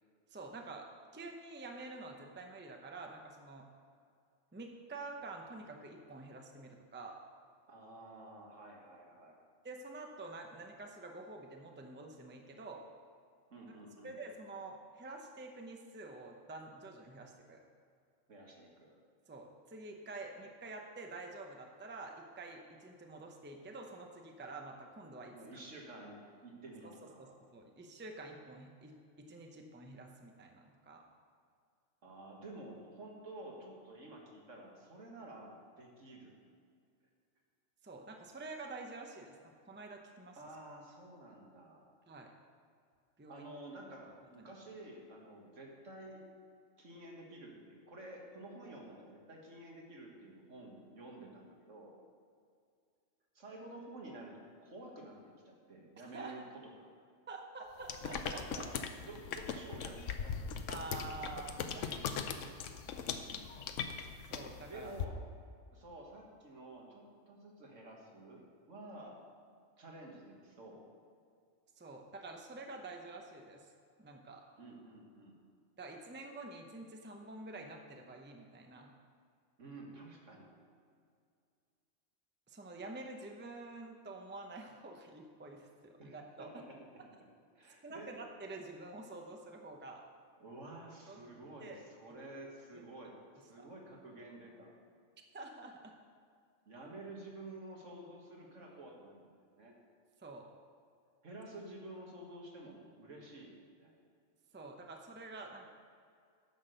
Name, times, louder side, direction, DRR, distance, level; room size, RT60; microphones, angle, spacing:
voice 1, 0.3-3.7 4.5-7.2 9.6-12.8 14.0-17.6 19.3-25.3 26.8-31.0 37.8-40.4 42.1-42.3 43.2-43.5 44.4-44.5 56.1-56.3 57.3-58.6 60.7-61.8 64.3-64.9 71.8-73.7 74.0-74.4 75.8-78.9 82.5-86.5 87.8-90.0 91.1-91.2 91.6-91.8 92.4-92.8 93.6-93.7 95.3-96.0 100.2-100.5 104.5-105.7, right 2 dB, 10° right, 2 dB, 0.6 m, -48 dB
voice 2, 7.7-9.4 13.5-14.2 18.3-19.0 25.3-27.4 32.0-36.3 40.4-41.9 43.3-46.2 46.8-51.9 53.3-55.2 55.5-56.4 56.8-56.9 58.5-58.7 59.0-60.5 61.7-62.5 63.5-63.6 64.7-65.2 65.7-69.2 69.8-70.8 74.6-75.4 79.6-80.5 86.0-86.8 87.6-88.1 90.4-94.7 96.7-99.8 101.2-103.5 103.8-103.9, right 2 dB, 70° right, -1 dB, 2.0 m, -51 dB
sound 1, 57.8-65.0, left 6 dB, 75° left, 1.0 m, -40 dB
10.0 x 6.0 x 6.6 m, 2.3 s
omnidirectional pair, 1.3 m